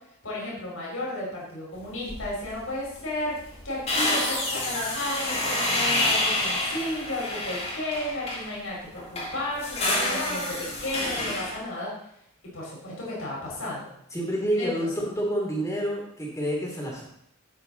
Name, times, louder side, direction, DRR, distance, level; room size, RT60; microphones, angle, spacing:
voice 1, 0.2-11.9 12.5-13.9 14.6-14.9, left 1 dB, 80° left, -4 dB, 4.9 m, -33 dB
sound 1, 2.1-2.5 2.9-3.0 3.3-8.5 9.0-11.6, left 1 dB, 30° left, 2.9 m, -28 dB
voice 2, 14.1-17.0, equal, 15° left, -1 dB, 2.9 m, -28 dB
12.5 x 8.1 x 4.0 m, 0.74 s
head